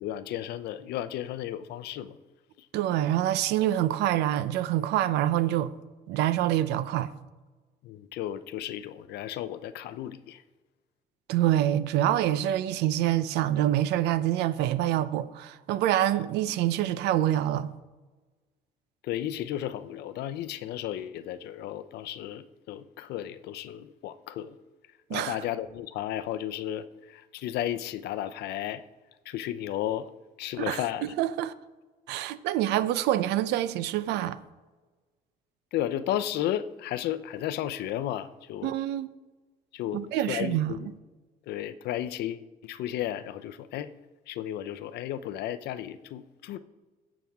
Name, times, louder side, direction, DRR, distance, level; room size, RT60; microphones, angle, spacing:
voice 1, 0.0-2.2 7.8-10.4 19.0-24.5 25.1-26.8 27.1-28.8 29.3-30.1 30.4-31.0 35.7-38.7 39.7-40.0 40.3-40.9 41.5-43.9 44.3-46.6, left 12 dB, 75° left, 0.6 m, -33 dB
voice 2, 2.7-5.7 6.1-7.1 11.3-17.7 25.1-25.4 30.6-31.5 32.1-34.4 38.6-39.1 39.9-40.7, right 12 dB, 85° right, 0.6 m, -26 dB
16.5 x 6.0 x 3.5 m
cardioid pair, 110°, 17 cm